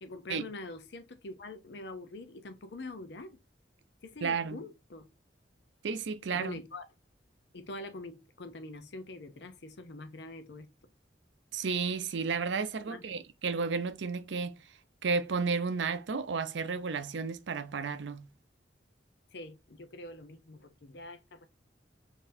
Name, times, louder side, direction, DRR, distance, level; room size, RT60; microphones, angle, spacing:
voice 1, 0.0-3.4 4.0-5.1 6.3-6.9 7.5-10.7 12.9-13.2 19.3-21.5, left 2 dB, 70° left, 0.6 m, -44 dB
voice 2, 4.2-4.6 5.8-6.6 11.5-14.5 15.0-18.2, right 5 dB, 80° right, 0.5 m, -32 dB
3.9 x 2.7 x 2.6 m
head